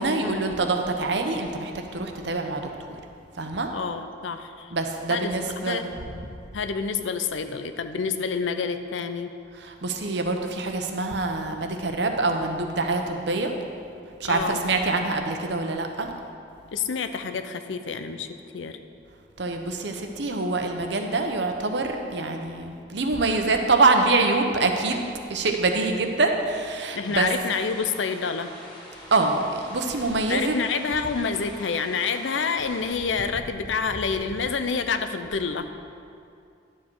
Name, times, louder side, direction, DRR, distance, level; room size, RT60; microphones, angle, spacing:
voice 1, 0.0-2.6 3.4-3.7 4.7-5.9 9.6-13.5 14.2-16.1 19.4-27.3 29.1-30.6, right 3 dB, 70° right, 4 dB, 0.9 m, -25 dB
voice 2, 3.7-4.7 5.1-5.8 6.5-9.3 14.2-14.7 16.7-18.3 18.5-18.8 26.9-28.5 30.3-35.7, left 5 dB, 90° left, 8 dB, 0.6 m, -28 dB
sound 1, 27.0-32.8, equal, 20° left, 1.4 m, -44 dB
11.5 x 7.5 x 4.7 m, 2.4 s
head